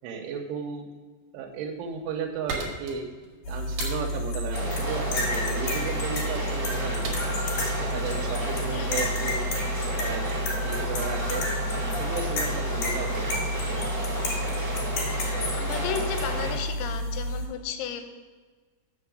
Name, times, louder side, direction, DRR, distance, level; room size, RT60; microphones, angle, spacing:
voice 1, 0.0-0.9 1.3-3.1 3.5-7.1 7.8-9.4 10.0-10.3 10.6-11.5 12.0-13.8, right 6 dB, 90° right, 1 dB, 3.2 m, -34 dB
sound 1, 1.6-9.0, right 4 dB, 65° right, 2.1 m, -40 dB
sound 2, 3.4-17.5, left 1 dB, 55° left, 3.2 m, -30 dB
sound 3, 4.5-16.5, right 1 dB, 35° right, 1.0 m, -33 dB
voice 2, 8.7-9.1 15.5-18.0, left 7 dB, 80° left, 7 dB, 3.0 m, -34 dB
6.8 x 6.8 x 6.3 m, 1.4 s
omnidirectional pair, 5.7 m